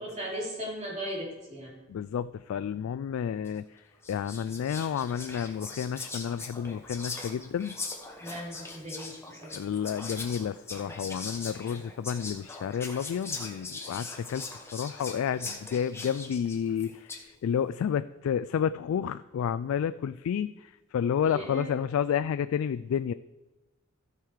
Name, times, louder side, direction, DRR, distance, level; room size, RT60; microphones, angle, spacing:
voice 1, 0.0-1.8 8.2-9.6 21.2-21.8, equal, 35° right, -3 dB, 3.1 m, -38 dB
voice 2, 1.9-3.6 4.1-7.8 9.5-14.4 14.7-17.1 17.4-23.1, left 8 dB, 85° left, 13 dB, 0.3 m, -30 dB
Whispering, 3.5-3.7 4.0-17.3, left 3 dB, 15° left, 1.2 m, -41 dB
14.0 x 6.5 x 4.7 m, 1.1 s
head